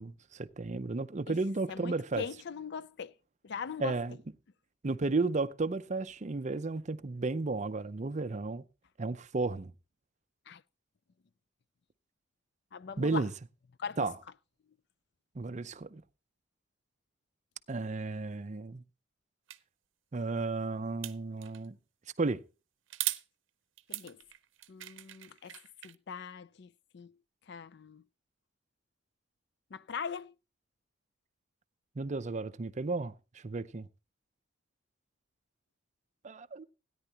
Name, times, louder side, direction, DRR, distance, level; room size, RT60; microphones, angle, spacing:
voice 1, 0.0-2.2 3.8-4.2 4.8-8.6 9.0-9.7 13.0-13.3 14.0-14.1 15.4-16.0 17.7-18.8 20.1-21.8 22.2-22.4 32.0-33.9 36.2-36.6, right 3 dB, 40° right, 0.5 m, -33 dB
voice 2, 1.7-3.1 3.4-4.0 10.5-10.6 12.7-13.2 13.8-14.0 23.9-24.2 24.7-25.5 25.8-27.1 27.5-28.0 29.7-30.3, left 6 dB, 60° left, 0.5 m, -41 dB
sound 1, 19.5-19.6 21.0-21.7 22.9-23.2 23.8-26.0, right 16 dB, 75° right, 0.7 m, -38 dB
17.0 x 10.0 x 2.9 m
head